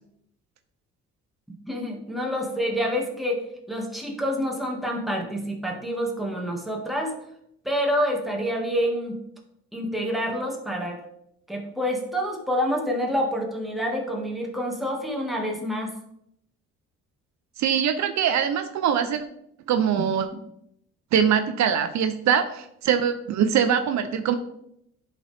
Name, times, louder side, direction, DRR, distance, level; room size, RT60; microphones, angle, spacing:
voice 1, 1.7-3.4 3.7-7.1 7.6-9.1 9.7-11.0 11.5-15.9 19.9-20.0, equal, ahead, 0 dB, 1.7 m, -27 dB
voice 2, 17.6-19.3 19.7-20.3 21.1-24.4, right 8 dB, 65° right, 9 dB, 0.6 m, -23 dB
11.0 x 4.1 x 3.4 m, 0.76 s
cardioid pair, 90°, 30 cm